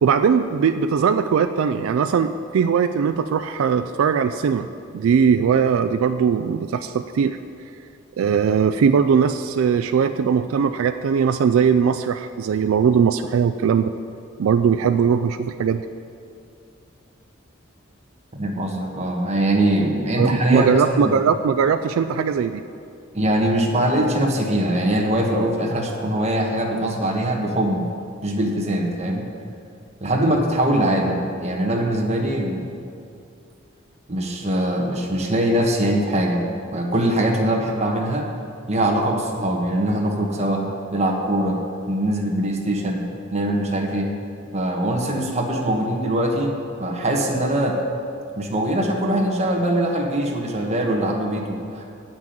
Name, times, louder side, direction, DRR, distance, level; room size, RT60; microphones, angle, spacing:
voice 1, 0.0-4.7 4.9-7.4 8.2-13.9 14.4-15.8 20.2-22.6, right 6 dB, 85° right, 10 dB, 0.3 m, -20 dB
voice 2, 18.4-21.1 23.1-27.8 28.2-29.2 30.0-32.7 34.1-38.3 38.7-40.6 40.9-41.6 41.9-44.1 44.5-47.8 48.4-51.8, right 1 dB, 35° right, 0 dB, 1.3 m, -22 dB
8.7 x 6.0 x 7.6 m, 2.4 s
head